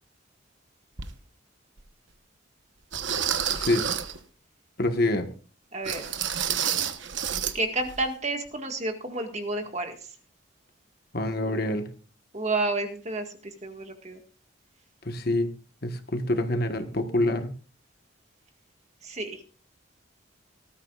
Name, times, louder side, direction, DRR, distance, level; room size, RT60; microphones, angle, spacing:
sound 1, 1.0-1.1 1.8-1.9 2.9-4.2 5.8-7.6 7.8-8.0 8.4-8.5, right 8 dB, 70° right, 1.1 m, -29 dB
voice 1, 4.8-5.3 11.1-11.9 15.0-15.5 15.8-17.5, left 1 dB, 50° left, 7 dB, 1.4 m, -26 dB
voice 2, 5.7-6.1 7.5-9.9 12.3-14.2 19.0-19.4, right 2 dB, 35° right, 5 dB, 1.8 m, -30 dB
19.0 x 13.0 x 2.4 m, 0.39 s
head